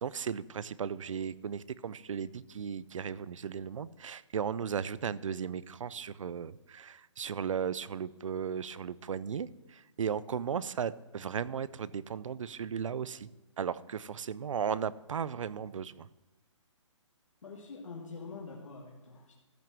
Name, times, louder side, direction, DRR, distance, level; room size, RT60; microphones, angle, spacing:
voice 1, 0.0-13.3 13.6-16.1, right 7 dB, 90° right, 19 dB, 0.5 m, -36 dB
voice 2, 17.4-19.3, left 4 dB, 85° left, -1 dB, 1.8 m, -45 dB
14.0 x 6.1 x 6.1 m, 1.1 s
hypercardioid pair, 170°, 16 cm